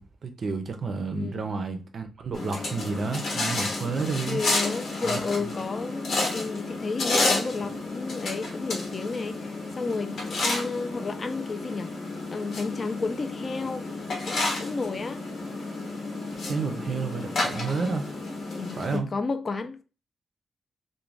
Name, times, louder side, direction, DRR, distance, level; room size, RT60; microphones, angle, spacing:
voice 1, 0.0-4.4 5.0-5.2 16.5-18.1 18.8-19.1, right 4 dB, 55° right, 0.4 m, -30 dB
voice 2, 1.1-1.5 4.3-11.9 12.3-13.8 14.2-15.2 18.5-19.8, left 4 dB, 40° left, 0.3 m, -32 dB
sound 1, 2.3-19.0, left 2 dB, 75° left, 0.9 m, -31 dB
2.5 x 2.1 x 3.1 m
cardioid pair, 105°, 0 cm